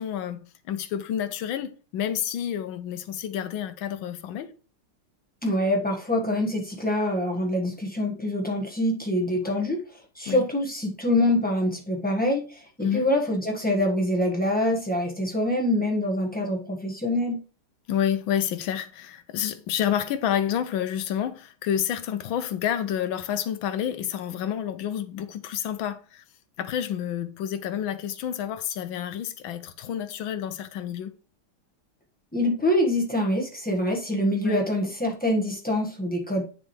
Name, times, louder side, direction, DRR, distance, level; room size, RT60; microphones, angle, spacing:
voice 1, 0.0-4.5 9.4-9.6 10.3-10.4 12.8-13.1 17.9-26.2 26.6-31.1 34.4-34.6, left 9 dB, 75° left, 1.4 m, -29 dB
voice 2, 5.4-9.8 10.1-17.4 32.3-36.4, left 1 dB, 5° left, 0.9 m, -25 dB
8.9 x 6.4 x 3.1 m
omnidirectional pair, 2.3 m